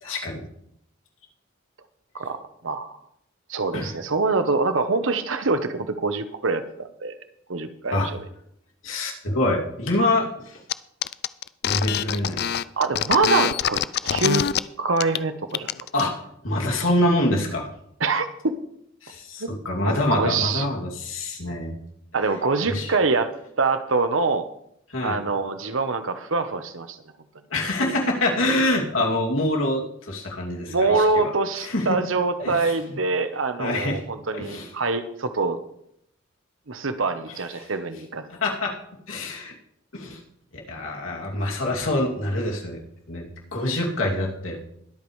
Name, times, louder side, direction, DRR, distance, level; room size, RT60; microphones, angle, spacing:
voice 1, 0.0-0.4 3.7-3.9 7.9-8.1 8.8-10.6 11.6-12.4 15.9-16.1 16.4-17.7 19.0-21.7 22.7-23.0 24.9-25.2 27.5-31.3 31.6-32.0 32.4-33.0 33.6-34.0 34.3-34.7 37.6-37.7 38.3-38.7 39.1-39.5 39.9-40.2 40.7-42.8 43.1-44.6, left 1 dB, 85° left, -1 dB, 2.7 m, -25 dB
voice 2, 2.1-3.0 3.5-7.2 7.5-8.2 12.8-14.4 14.8-15.7 18.0-18.5 19.4-19.5 19.8-20.7 22.1-23.3 23.6-24.5 25.0-27.0 30.7-35.6 36.7-38.2, right 3 dB, 80° right, 9 dB, 1.0 m, -24 dB
sound 1, 10.7-10.8 11.0-14.6 15.0-15.2 15.5-16.0, left 9 dB, 55° left, 0.4 m, -24 dB
21.5 x 8.5 x 3.3 m, 0.75 s
head